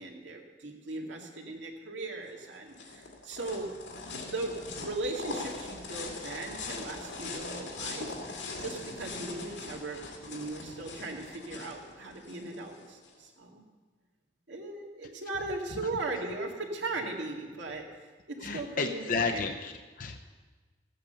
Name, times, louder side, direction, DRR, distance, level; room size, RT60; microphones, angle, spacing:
voice 1, 0.0-3.7 4.2-4.6 4.8-10.0 10.3-13.7 14.5-17.9 18.3-19.4, right 2 dB, 85° right, 0 dB, 2.0 m, -38 dB
sound 1, 2.3-13.1, left 3 dB, 85° left, 2.3 m, -41 dB
voice 2, 18.4-20.2, left 4 dB, 45° left, 4 dB, 0.7 m, -32 dB
15.5 x 8.6 x 6.8 m, 1.4 s
head